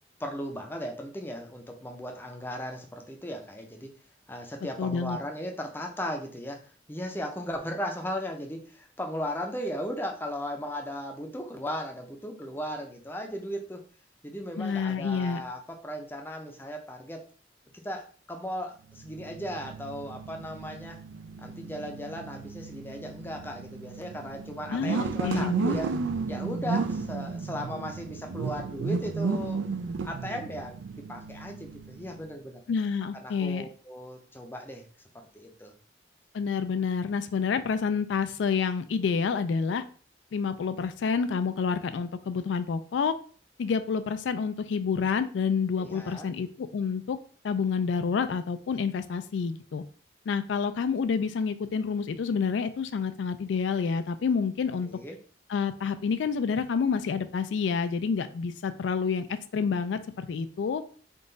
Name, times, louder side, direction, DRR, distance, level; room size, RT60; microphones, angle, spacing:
voice 1, 0.2-3.9 4.3-13.8 14.2-17.2 17.8-21.0 21.4-25.9 26.3-29.6 30.0-32.6 33.1-34.9 35.1-35.7 45.8-46.3 54.8-55.2, equal, 10° left, 2 dB, 0.5 m, -37 dB
voice 2, 4.8-5.2 14.6-15.4 24.7-25.8 32.7-33.7 36.3-39.8 40.3-43.1 43.6-47.2 47.4-49.8 50.3-54.9 55.5-60.8, left 5 dB, 80° left, 11 dB, 0.3 m, -28 dB
sound 1, 18.9-32.3, right 4 dB, 85° right, 0.4 m, -34 dB
3.8 x 2.4 x 3.8 m, 0.42 s
head